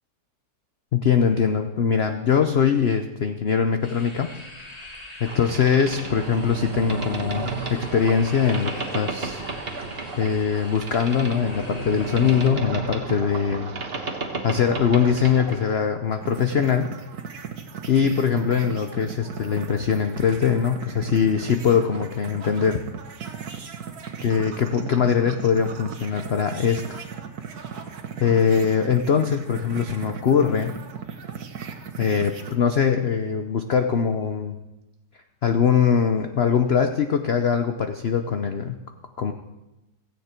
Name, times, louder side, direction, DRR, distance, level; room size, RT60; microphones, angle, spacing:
voice 1, 0.9-4.3 5.2-9.4 10.2-13.7 14.4-16.9 17.9-22.8 24.2-26.8 28.2-30.7 32.0-34.6 35.4-38.8 39.2-39.3, left 7 dB, 50° left, 7 dB, 0.8 m, -22 dB
sound 1, 3.8-12.5, left 1 dB, 20° left, 2.4 m, -43 dB
Boat Water vehicle, 5.2-15.8, right 3 dB, 35° right, 1.5 m, -32 dB
sound 2, 16.1-32.6, right 6 dB, 65° right, 1.7 m, -37 dB
16.5 x 15.5 x 4.5 m, 1.0 s
omnidirectional pair, 1.8 m